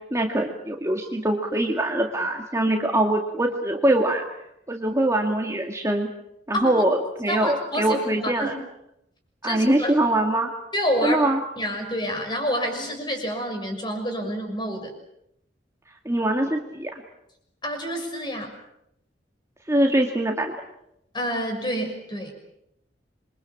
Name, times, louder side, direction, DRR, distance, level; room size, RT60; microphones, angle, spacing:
voice 1, 0.1-4.2 4.7-6.1 6.5-8.5 9.4-10.5 11.0-11.4 16.1-16.9 19.7-20.5, right 1 dB, 15° right, 2 dB, 2.0 m, -23 dB
voice 2, 7.3-8.5 9.4-10.0 10.7-11.2 11.6-14.9 17.6-18.5 21.1-22.3, equal, 25° left, 4 dB, 6.4 m, -28 dB
27.5 x 24.0 x 7.2 m, 0.80 s
head